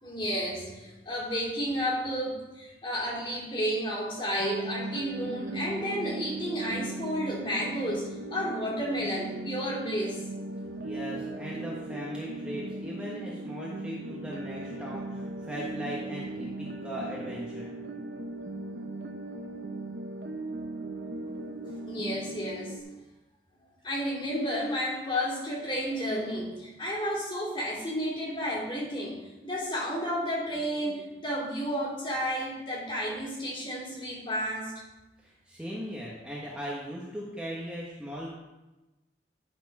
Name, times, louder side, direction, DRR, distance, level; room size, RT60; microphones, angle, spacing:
voice 1, 0.0-10.2 21.8-22.8 23.8-34.7, equal, 30° left, -5 dB, 2.9 m, -32 dB
sound 1, 4.4-22.8, right 2 dB, 70° right, 0.8 m, -38 dB
voice 2, 10.8-17.7 35.2-38.3, equal, 5° right, -5 dB, 1.1 m, -38 dB
11.0 x 4.5 x 5.3 m, 1.1 s
head